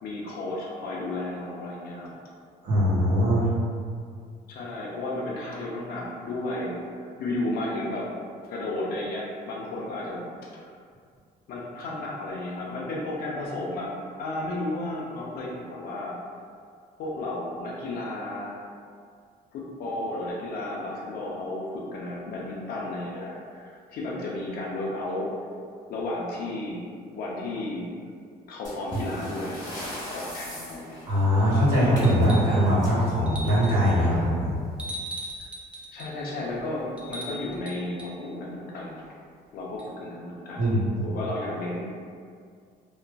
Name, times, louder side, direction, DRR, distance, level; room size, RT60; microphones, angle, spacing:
voice 1, 0.0-2.1 4.5-8.1 8.5-10.3 11.5-16.2 17.0-18.6 19.5-25.4 25.9-26.8 27.1-28.0 28.5-29.6 30.1-31.0 35.9-39.0 39.5-41.9, left 2 dB, 65° left, -4 dB, 0.6 m, -33 dB
voice 2, 2.6-3.5 31.0-34.6 40.6-40.8, equal, 65° right, -8 dB, 1.3 m, -21 dB
sound 1, 28.6-34.0 35.3-35.4 35.7-35.8 36.5-36.6 37.3-37.5, equal, 25° left, 1.2 m, -39 dB
sound 2, 32.0-32.6 33.3-33.9 34.8-36.2 37.0-38.2 39.8-39.9, right 1 dB, 5° right, 0.4 m, -39 dB
2.9 x 2.5 x 2.2 m, 2.2 s
cardioid pair, 110°, 17 cm